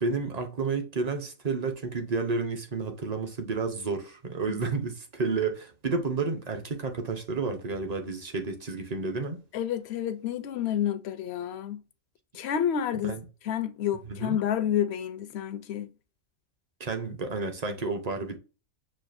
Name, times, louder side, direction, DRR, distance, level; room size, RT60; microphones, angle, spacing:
voice 1, 0.0-9.4 13.0-13.2 14.0-14.4 16.8-18.4, right 4 dB, 40° right, 0.6 m, -31 dB
voice 2, 9.5-11.8 12.3-13.2 13.4-15.9, left 9 dB, 65° left, 0.7 m, -29 dB
6.4 x 2.5 x 2.5 m
omnidirectional pair, 1.4 m